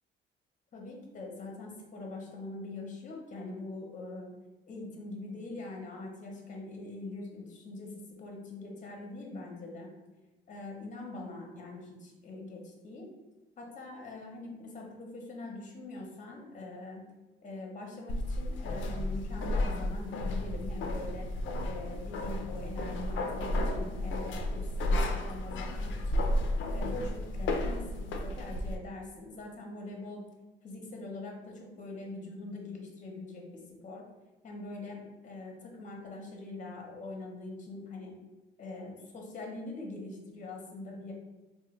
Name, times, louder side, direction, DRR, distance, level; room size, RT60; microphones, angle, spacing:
voice 1, 0.7-4.3 4.7-9.9 10.5-13.1 13.6-17.0 17.4-21.3 21.6-26.2 26.7-30.2 30.6-34.0 34.4-38.2 38.6-41.1, left 2 dB, 40° left, 0 dB, 0.7 m, -43 dB
sound 1, 18.1-28.8, left 1 dB, 70° left, 0.4 m, -32 dB
3.3 x 2.1 x 3.1 m, 1.2 s
cardioid pair, 90°, 20 cm